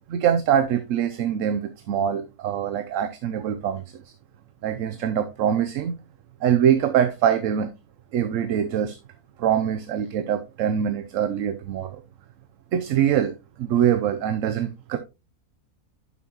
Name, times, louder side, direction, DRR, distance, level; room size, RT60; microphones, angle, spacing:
voice 1, 0.1-4.1 4.6-5.9 6.4-7.7 8.1-9.0 9.4-12.0 12.7-15.0, right 9 dB, 65° right, 1.0 m, -24 dB
11.0 x 5.9 x 2.9 m
omnidirectional pair, 1.5 m